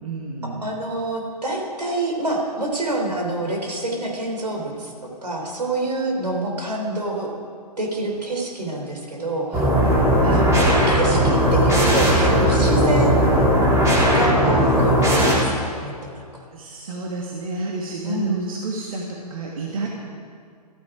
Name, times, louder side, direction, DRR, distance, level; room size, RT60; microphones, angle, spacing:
voice 1, 0.0-0.6 10.2-10.5 16.5-19.0 19.3-19.9, right 3 dB, 60° right, -1 dB, 2.0 m, -29 dB
voice 2, 0.6-7.3 7.8-9.7 10.3-13.5 14.1-16.5 18.0-18.4, right 2 dB, 80° right, 1 dB, 3.6 m, -27 dB
sound 1, 9.5-15.3, equal, 15° right, 3.4 m, -17 dB
14.5 x 14.0 x 4.9 m, 2.2 s
figure-of-eight pair, 120°, 21 cm